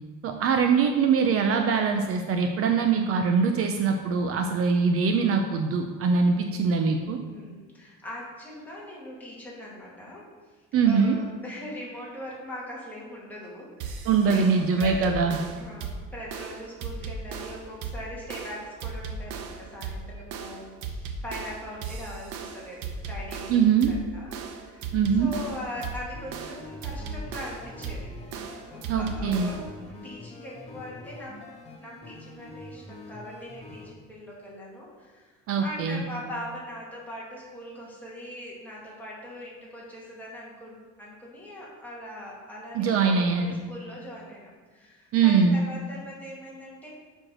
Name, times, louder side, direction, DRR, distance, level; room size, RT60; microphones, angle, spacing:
voice 1, 0.2-7.2 10.7-11.2 14.1-15.4 23.5-23.9 24.9-25.3 28.9-29.5 35.5-36.0 42.7-43.5 45.1-45.6, right 5 dB, 50° right, 5 dB, 0.6 m, -23 dB
voice 2, 7.3-10.3 10.8-15.2 15.6-28.1 28.7-29.6 29.9-31.4 31.8-35.3 35.6-46.9, equal, 5° left, -6 dB, 2.0 m, -41 dB
sound 1, 13.8-29.8, right 4 dB, 85° right, 0.9 m, -37 dB
sound 2, 25.0-33.9, left 2 dB, 20° left, 1.1 m, -45 dB
7.7 x 4.6 x 6.1 m, 1.4 s
cardioid pair, 160°, 29 cm